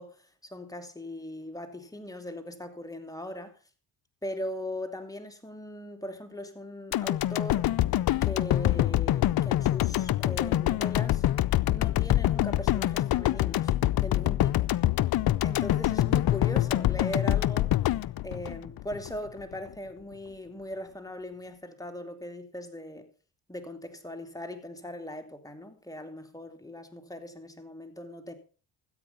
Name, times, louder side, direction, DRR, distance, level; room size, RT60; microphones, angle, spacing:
voice 1, 0.0-3.6 4.2-7.7 8.2-11.2 11.7-13.7 14.0-14.7 15.4-23.1 23.5-28.3, left 1 dB, 5° left, 2.8 m, -39 dB
sound 1, 6.9-19.1 19.5-19.6, left 14 dB, 50° left, 0.6 m, -25 dB
14.0 x 8.6 x 5.6 m
supercardioid pair, 65°, 46 cm